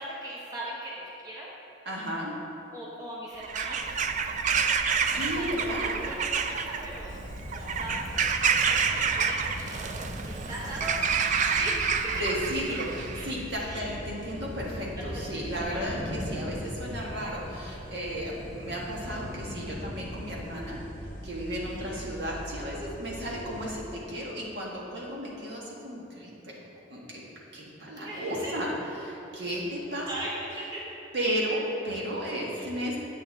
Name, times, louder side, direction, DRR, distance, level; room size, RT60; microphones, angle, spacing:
voice 1, 0.0-1.5 2.7-3.9 5.2-7.2 7.5-9.9 10.2-11.0 11.5-12.3 13.1-13.9 15.0-15.9 21.8-21.9 28.0-28.6 30.1-30.9 32.5-32.7, right 1 dB, 20° right, -5 dB, 1.0 m, -39 dB
voice 2, 1.9-2.3 4.6-6.0 12.1-20.9 21.2-26.5 26.9-27.2 27.5-30.1 31.1-33.0, equal, 60° right, -4 dB, 1.6 m, -34 dB
Bird vocalization bird call bird song / Crow, 3.4-13.3, right 6 dB, 40° right, 0.4 m, -28 dB
sound 1, 7.1-23.8, left 1 dB, 45° left, 1.1 m, -41 dB
Thunder, 14.3-19.3, equal, 15° left, 1.0 m, -44 dB
8.8 x 8.4 x 3.6 m, 3.0 s
head